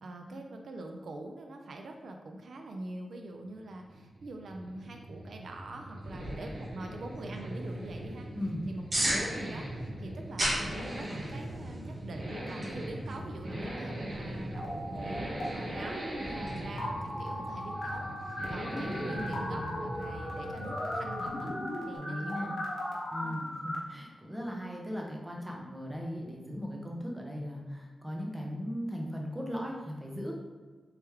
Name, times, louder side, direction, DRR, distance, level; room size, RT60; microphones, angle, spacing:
voice 1, 0.0-8.3 8.7-21.5 21.9-22.6 23.2-23.4, right 2 dB, 65° right, 3 dB, 0.3 m, -45 dB
sound 1, 3.5-21.5, right 1 dB, 85° right, 1.1 m, -40 dB
sound 2, 6.0-16.6, right 1 dB, 30° right, 1.3 m, -39 dB
sound 3, 14.5-15.5 15.7-23.8, left 1 dB, 55° left, 0.7 m, -37 dB
voice 2, 22.0-22.5 23.1-30.4, equal, 5° right, -1 dB, 0.6 m, -38 dB
3.2 x 3.0 x 3.5 m, 1.3 s
wide cardioid pair, 160°, 0 cm